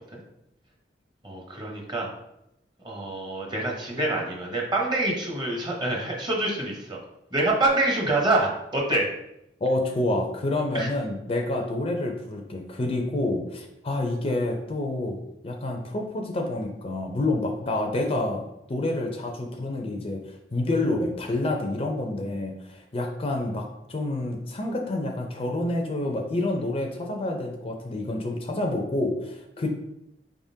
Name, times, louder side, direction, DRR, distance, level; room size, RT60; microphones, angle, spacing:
voice 1, 1.2-2.1 2.8-7.0 7.3-9.1 10.7-10.9, right 2 dB, 25° right, -1 dB, 0.9 m, -26 dB
voice 2, 9.6-15.2 15.4-18.4 18.7-29.7, left 2 dB, 30° left, 3 dB, 0.5 m, -28 dB
5.4 x 3.6 x 2.7 m, 0.84 s
head